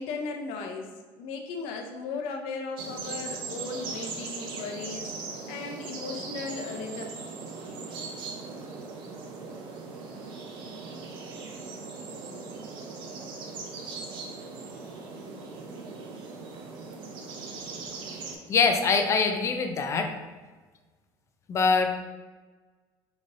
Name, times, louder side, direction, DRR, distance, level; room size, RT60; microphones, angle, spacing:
voice 1, 0.0-5.1 5.5-7.0, left 4 dB, 70° left, 3 dB, 0.7 m, -36 dB
sound 1, 2.8-18.4, right 4 dB, 55° right, 0.7 m, -39 dB
voice 2, 18.5-20.1 21.5-22.0, left 5 dB, 30° left, 6 dB, 0.4 m, -23 dB
4.8 x 4.0 x 2.6 m, 1.3 s
cardioid pair, 150°, 10 cm